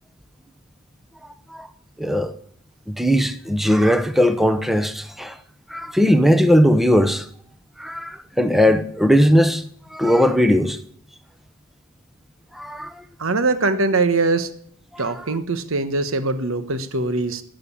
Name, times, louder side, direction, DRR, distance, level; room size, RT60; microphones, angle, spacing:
voice 1, 2.0-2.3 2.9-5.4 5.7-7.3 7.8-9.6 9.9-10.8 12.5-13.0 14.9-15.0 15.3-15.4, equal, ahead, 0.9 m, -18 dB
voice 2, 13.2-14.5 15.0-17.4, right 3 dB, 70° right, 1.2 m, -22 dB
19.5 x 7.7 x 8.7 m
head